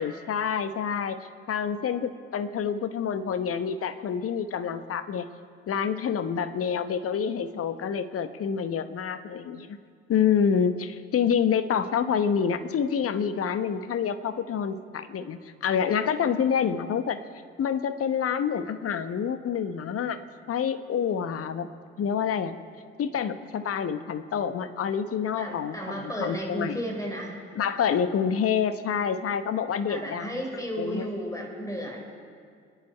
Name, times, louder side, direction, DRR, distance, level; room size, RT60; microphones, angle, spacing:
voice 1, 0.0-5.3 5.7-9.8 10.1-17.2 17.6-20.2 20.5-21.7 22.0-22.6 23.0-26.8 27.5-30.4 30.8-31.1, left 7 dB, 45° left, 11 dB, 1.0 m, -27 dB
voice 2, 25.4-27.4 29.9-32.0, equal, 10° left, 0 dB, 4.5 m, -33 dB
29.5 x 10.5 x 4.4 m, 2.2 s
figure-of-eight pair, 45°, 33 cm